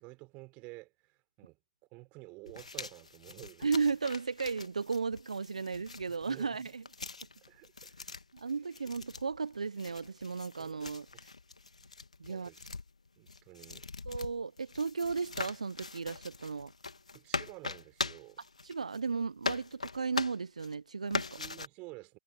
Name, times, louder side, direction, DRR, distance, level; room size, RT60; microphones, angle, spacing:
voice 1, 0.0-1.6 1.9-3.7 6.3-6.7 7.5-8.1 8.4-8.7 10.6-10.8 11.1-11.2 12.3-12.7 13.2-13.9 17.1-18.4 21.4-22.2, right 25 dB, 35° right, 3.9 m, -51 dB
sound 1, 2.5-19.1 19.4-20.7 21.1-21.7, left 4 dB, 80° left, 2.0 m, -41 dB
voice 2, 3.6-6.8 8.3-11.1 12.2-12.5 14.1-16.7 18.6-21.4, right 5 dB, 75° right, 0.9 m, -35 dB
figure-of-eight pair, 115°, 4 cm